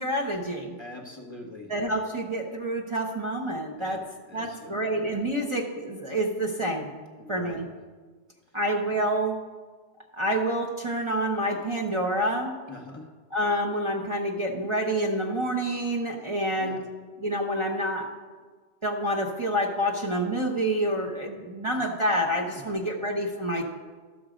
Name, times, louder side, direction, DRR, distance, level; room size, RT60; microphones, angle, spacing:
voice 1, 0.0-0.8 1.7-4.0 4.3-6.9 7.3-7.7 8.5-9.4 10.1-12.6 13.3-16.8 17.2-18.1 18.8-23.6, right 1 dB, 30° right, -1 dB, 0.8 m, -28 dB
voice 2, 0.8-1.7 3.8-4.9 7.2-7.6 12.7-13.1 16.5-16.9 22.5-22.8, left 2 dB, 25° left, 1 dB, 1.0 m, -43 dB
13.0 x 6.7 x 5.0 m, 1.4 s
omnidirectional pair, 1.2 m